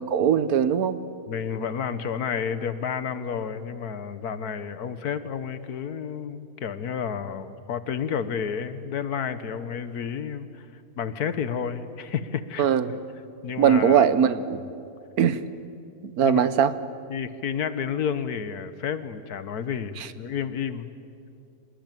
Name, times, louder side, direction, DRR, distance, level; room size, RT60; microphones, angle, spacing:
voice 1, 0.1-1.0 12.6-12.9 13.6-14.6 15.2-15.4 16.1-16.7 20.0-20.1, right 8 dB, 75° right, 14 dB, 1.4 m, -20 dB
voice 2, 1.3-10.7 11.0-12.7 13.4-14.1 14.5-14.7 16.2-16.5 17.1-20.9, left 7 dB, 85° left, 12 dB, 1.7 m, -31 dB
26.0 x 20.5 x 9.1 m, 2.5 s
omnidirectional pair, 1.6 m